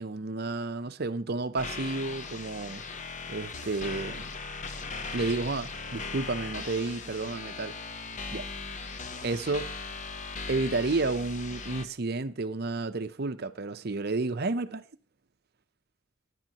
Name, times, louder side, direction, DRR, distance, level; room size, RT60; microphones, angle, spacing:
voice 1, 0.0-2.8 3.3-4.3 5.1-7.8 8.3-8.5 9.2-9.7 10.5-14.8, right 3 dB, 50° right, 0.7 m, -31 dB
sound 1, 1.6-11.9, left 4 dB, 35° left, 0.8 m, -38 dB
18.5 x 11.0 x 2.9 m
head